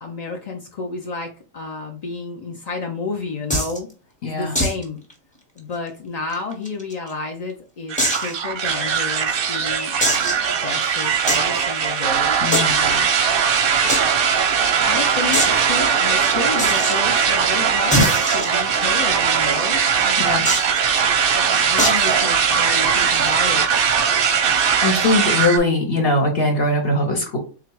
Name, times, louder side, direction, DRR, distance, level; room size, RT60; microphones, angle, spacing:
voice 1, 0.0-3.9 4.2-5.0 5.6-13.1 14.9-20.5 21.3-23.7, left 4 dB, 65° left, 2 dB, 0.4 m, -31 dB
sound 1, 3.5-3.8 4.6-4.8 5.1-5.2 5.6-5.7 6.3-7.1 8.0-8.3 8.9-9.0 10.0-10.5 11.3-11.5 12.5-13.0 13.9-14.0 14.3-14.4 14.6-14.7 15.3-15.6 16.6-16.9 17.9-19.0 20.5-20.8 21.8-22.2, equal, 5° left, 0.8 m, -22 dB
voice 2, 4.2-4.5 12.4-12.7 20.2-20.5 24.8-27.4, left 2 dB, 50° left, 2 dB, 1.0 m, -20 dB
sound 2, 7.9-25.6, right 7 dB, 55° right, 0.7 m, -19 dB
3.6 x 2.4 x 4.5 m, 0.36 s
omnidirectional pair, 1.4 m